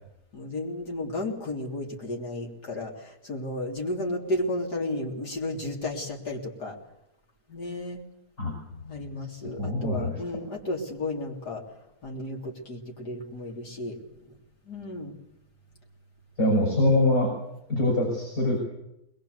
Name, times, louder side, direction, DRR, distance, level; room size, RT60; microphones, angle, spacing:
voice 1, 0.3-6.7 7.5-8.0 8.9-11.6 12.0-14.0 14.3-14.4 14.6-15.2 16.5-16.9, left 1 dB, 90° left, -1 dB, 4.0 m, -33 dB
voice 2, 9.6-10.2 16.4-17.3 17.7-18.6, left 1 dB, 65° left, 0 dB, 6.8 m, -24 dB
22.0 x 21.5 x 8.0 m, 0.86 s
omnidirectional pair, 1.7 m